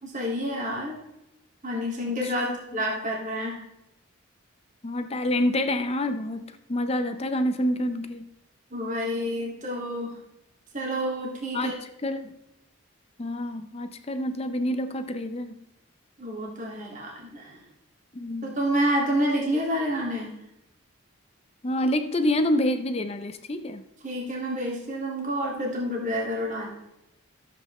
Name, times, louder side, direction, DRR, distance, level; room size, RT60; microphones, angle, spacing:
voice 1, 0.0-1.0 1.6-3.6 8.7-10.2 10.7-11.8 16.2-17.6 18.4-20.3 24.0-26.7, equal, 35° right, -2 dB, 2.0 m, -28 dB
voice 2, 2.2-2.6 4.8-8.3 11.5-11.7 12.0-12.3 13.2-15.6 18.1-18.6 21.6-23.8, left 1 dB, 30° left, 9 dB, 0.5 m, -27 dB
13.0 x 7.9 x 3.1 m, 0.89 s
head